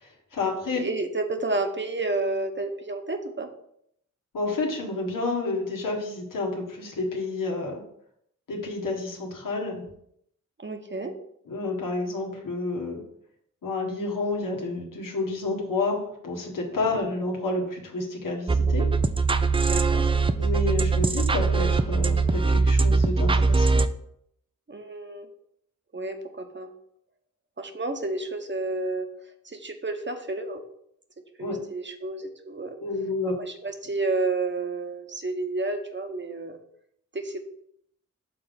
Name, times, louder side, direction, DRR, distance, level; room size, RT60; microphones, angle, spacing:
voice 1, 0.0-0.8 4.3-7.8 8.5-9.8 11.5-13.0 13.6-18.9 20.4-23.8 31.4-31.6 32.8-33.3, left 3 dB, 85° left, 1 dB, 1.5 m, -30 dB
voice 2, 0.8-3.5 10.6-11.1 16.7-16.8 19.6-20.0 24.7-25.3 25.9-26.7 27.6-29.1 29.4-30.6 31.4-32.8 33.4-36.6 37.1-37.4, right 2 dB, 35° right, 5 dB, 1.1 m, -30 dB
sound 1, 18.5-23.9, right 4 dB, 15° right, 0.4 m, -22 dB
6.2 x 3.8 x 5.2 m, 0.71 s
cardioid pair, 55°, 32 cm